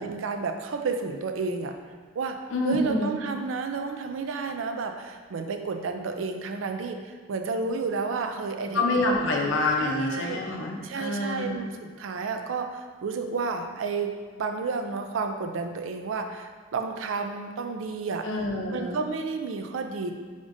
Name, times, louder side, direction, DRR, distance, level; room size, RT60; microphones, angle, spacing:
voice 1, 0.0-1.7 2.2-2.4 2.6-9.3 9.8-10.4 10.8-14.1 14.4-18.3 18.7-20.1, right 4 dB, 90° right, 6 dB, 0.4 m, -31 dB
voice 2, 2.5-3.1 8.7-11.6 18.2-19.0, left 2 dB, 75° left, -1 dB, 0.7 m, -27 dB
5.0 x 3.5 x 2.6 m, 1.5 s
head